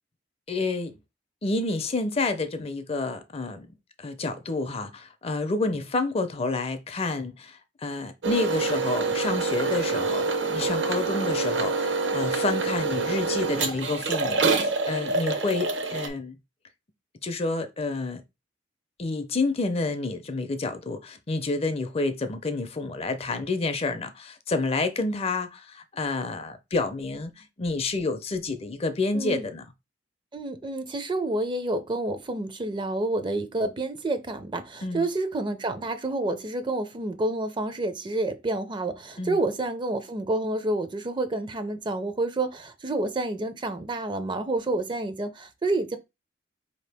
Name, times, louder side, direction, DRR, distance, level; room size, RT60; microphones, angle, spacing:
voice 1, 0.5-0.9 1.4-3.7 4.0-16.4 17.2-18.2 19.0-29.7 34.8-35.1 39.2-39.4, left 3 dB, 30° left, 0.5 m, -29 dB
sound 1, 8.2-16.1, right 3 dB, 70° right, 0.8 m, -26 dB
voice 2, 30.3-46.0, right 2 dB, 25° right, 0.4 m, -29 dB
4.5 x 2.8 x 3.4 m
head